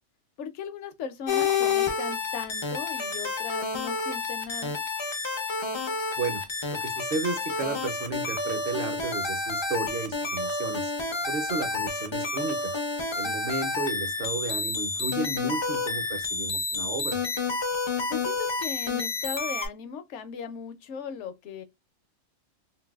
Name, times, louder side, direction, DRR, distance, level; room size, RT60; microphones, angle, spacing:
voice 1, 0.4-4.7 13.2-13.4 18.1-21.6, left 7 dB, 65° left, 0.8 m, -38 dB
sound 1, 1.3-19.7, left 4 dB, 45° left, 0.3 m, -29 dB
voice 2, 6.7-10.9 11.3-12.7 13.2-17.2, right 4 dB, 55° right, 0.7 m, -33 dB
3.8 x 2.2 x 2.3 m
omnidirectional pair, 1.4 m